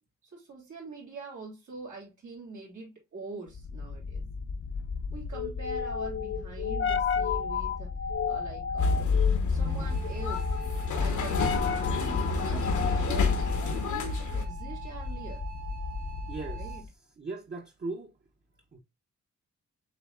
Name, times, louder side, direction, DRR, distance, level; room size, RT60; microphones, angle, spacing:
voice 1, 0.3-4.2 5.1-7.9 8.3-9.1 9.5-10.5 10.9-13.4 13.6-15.4 16.5-16.8, right 4 dB, 90° right, 3.1 m, -44 dB
sound 1, 3.5-16.9, left 5 dB, 45° left, 0.5 m, -33 dB
sound 2, 8.8-14.4, left 4 dB, 85° left, 1.0 m, -28 dB
sound 3, 9.6-16.8, right 12 dB, 55° right, 1.8 m, -46 dB
voice 2, 16.3-16.8 17.2-18.1 18.7-18.8, right 3 dB, 35° right, 0.7 m, -38 dB
7.4 x 3.1 x 2.3 m
cardioid pair, 90°, 29 cm